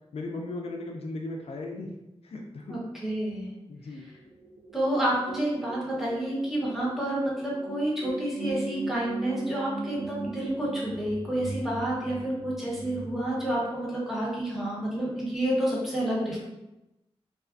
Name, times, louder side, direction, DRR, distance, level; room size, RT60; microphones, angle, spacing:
voice 1, 0.1-1.9 2.2-2.8 3.7-4.1, left 2 dB, 65° left, 1 dB, 0.4 m, -36 dB
voice 2, 2.7-3.5 4.7-16.4, right 1 dB, ahead, -6 dB, 1.0 m, -29 dB
sound 1, 4.0-13.5, right 3 dB, 85° right, 0.5 m, -40 dB
2.3 x 2.2 x 2.4 m, 0.93 s
cardioid pair, 65°, 11 cm